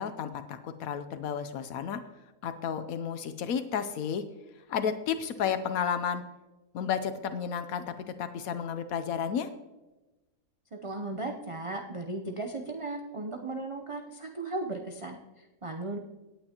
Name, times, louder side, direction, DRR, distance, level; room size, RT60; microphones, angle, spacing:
voice 1, 0.0-2.0 2.4-4.2 4.7-6.2 6.7-9.5, left 7 dB, 80° left, 10 dB, 1.1 m, -32 dB
voice 2, 10.7-16.0, right 2 dB, 35° right, 3 dB, 0.5 m, -36 dB
17.5 x 8.8 x 2.9 m, 1.1 s
omnidirectional pair, 1.5 m